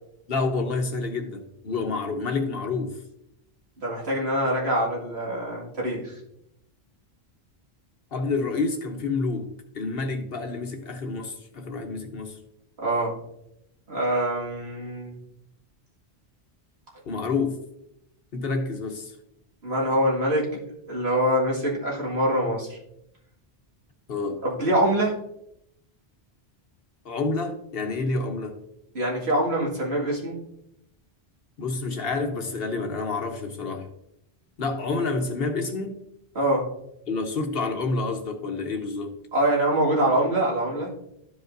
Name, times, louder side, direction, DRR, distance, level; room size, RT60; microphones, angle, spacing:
voice 1, 0.3-3.0 8.1-9.5 9.7-12.4 17.1-17.6 18.3-19.2 24.1-24.4 27.0-28.6 31.6-33.9 34.6-36.0 37.1-39.2, left 3 dB, 65° left, 5 dB, 1.0 m, -28 dB
voice 2, 3.8-6.2 12.8-13.2 13.9-15.2 19.6-20.6 20.9-22.8 24.4-25.1 28.9-30.4 36.4-36.7 39.3-40.9, right 1 dB, 80° right, -3 dB, 2.3 m, -24 dB
12.5 x 5.1 x 2.6 m, 0.79 s
omnidirectional pair, 1.1 m